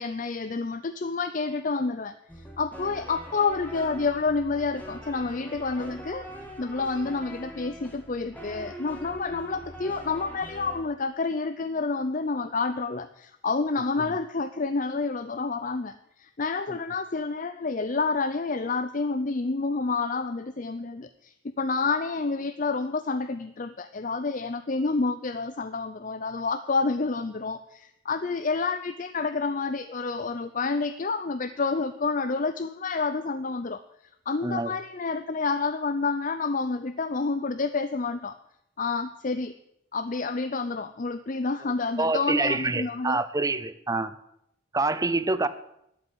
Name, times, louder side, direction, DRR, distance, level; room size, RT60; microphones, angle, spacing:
voice 1, 0.0-6.3 6.6-33.8 34.3-38.4 38.8-39.5 39.9-43.2, left 4 dB, 40° left, 11 dB, 0.5 m, -29 dB
sound 1, 2.3-10.8, equal, 10° left, 2.2 m, -43 dB
voice 2, 42.0-44.1 44.7-45.5, right 3 dB, 15° right, 14 dB, 0.6 m, -26 dB
12.0 x 8.2 x 9.7 m, 0.78 s
head